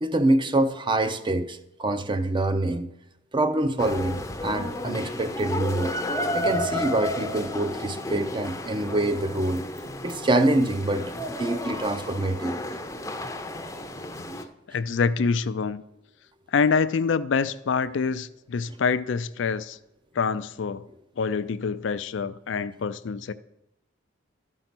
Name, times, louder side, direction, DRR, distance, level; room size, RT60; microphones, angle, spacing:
voice 1, 0.0-2.9 3.3-6.0 6.3-9.7 10.0-12.6, right 2 dB, 25° right, 0.6 m, -25 dB
sound 1, 3.8-14.4, left 1 dB, 15° left, 0.6 m, -32 dB
voice 2, 14.7-15.8 16.5-19.8 20.1-20.9 21.2-23.3, left 5 dB, 65° left, 0.4 m, -26 dB
12.5 x 5.4 x 6.0 m
head